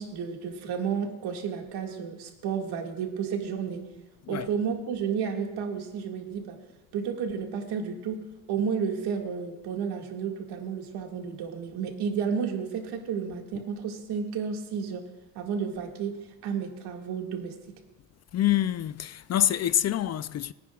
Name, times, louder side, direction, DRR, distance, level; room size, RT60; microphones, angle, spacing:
voice 1, 0.0-3.8 4.3-6.6 6.9-15.0 15.4-17.5, right 6 dB, 80° right, 2.0 m, -32 dB
voice 2, 18.3-20.5, left 12 dB, 45° left, 0.4 m, -26 dB
23.0 x 9.6 x 2.3 m
cardioid pair, 85°, 39 cm